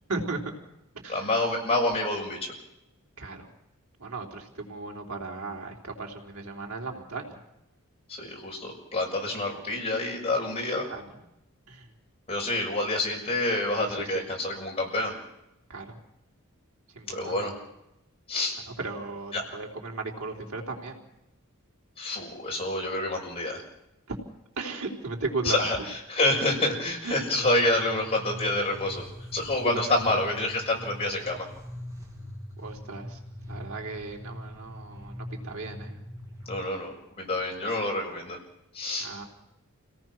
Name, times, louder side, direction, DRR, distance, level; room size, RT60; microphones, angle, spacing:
voice 1, 0.1-0.4 0.9-1.4 3.2-3.5 4.0-7.4 10.9-11.2 11.7-11.9 13.8-14.3 15.7-16.0 16.9-17.5 18.6-21.0 24.1-24.2 24.6-25.8 27.0-27.2 29.6-30.3 32.6-33.2 33.5-36.0 39.0-39.2, right 3 dB, 90° right, 1 dB, 3.9 m, -36 dB
voice 2, 1.1-2.4 8.2-10.8 12.3-15.1 17.1-17.5 18.3-18.5 19.3-19.4 22.0-23.6 25.4-25.8 26.1-29.0 29.3-31.4 36.5-38.4 38.7-39.1, left 2 dB, 30° left, -1 dB, 6.6 m, -27 dB
sound 1, 27.7-36.6, left 1 dB, 15° right, 5.9 m, -42 dB
28.5 x 18.0 x 6.2 m, 0.87 s
head